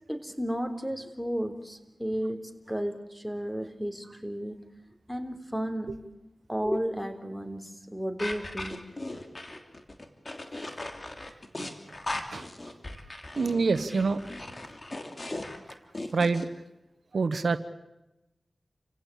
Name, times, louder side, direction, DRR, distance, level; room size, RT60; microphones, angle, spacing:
voice 1, 0.1-4.6 5.1-5.9 6.5-8.9, equal, ahead, 7 dB, 3.6 m, -33 dB
sound 1, 8.2-16.4, left 2 dB, 45° left, 3.0 m, -38 dB
voice 2, 13.3-14.2 16.1-16.5 17.1-17.6, right 4 dB, 80° right, 11 dB, 1.1 m, -26 dB
29.5 x 16.5 x 8.6 m, 0.95 s
cardioid pair, 40°, 0 cm